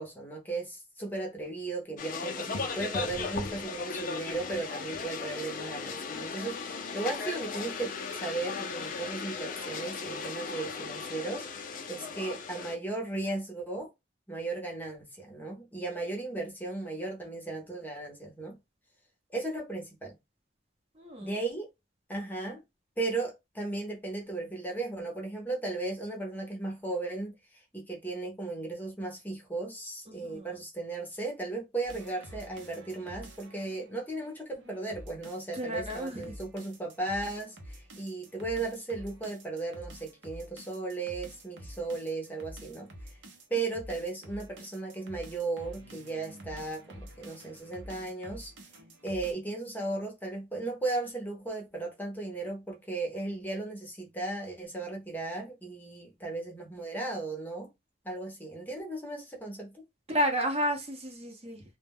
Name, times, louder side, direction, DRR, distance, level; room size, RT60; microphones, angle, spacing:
voice 1, 0.0-13.9 14.3-18.6 19.3-20.1 21.2-21.7 22.1-22.6 23.0-43.1 43.5-48.5 49.0-57.7 58.0-59.8, right 3 dB, 10° left, 0.7 m, -36 dB
sound 1, 2.0-12.8, left 4 dB, 50° left, 0.5 m, -37 dB
voice 2, 21.0-21.4 30.1-30.5 35.5-36.3 60.1-61.6, equal, 35° right, 0.7 m, -32 dB
sound 2, 31.9-49.3, right 1 dB, 85° right, 0.7 m, -49 dB
2.2 x 2.1 x 3.3 m
head